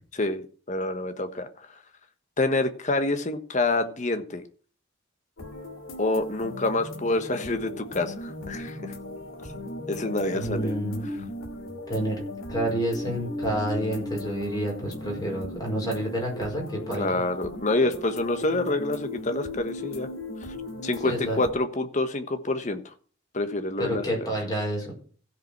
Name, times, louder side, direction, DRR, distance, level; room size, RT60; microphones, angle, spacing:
voice 1, 0.1-1.7 2.4-4.4 6.0-8.9 9.9-10.8 17.0-20.1 20.8-22.8 23.3-24.0, left 2 dB, 40° left, 9 dB, 1.2 m, -27 dB
sound 1, 5.4-21.5, left 1 dB, 90° left, 2.6 m, -37 dB
voice 2, 10.3-11.1 11.9-12.2 12.5-17.2 21.0-21.4 23.8-24.9, right 1 dB, 20° left, -1 dB, 5.0 m, -29 dB
16.0 x 5.3 x 5.9 m, 0.43 s
head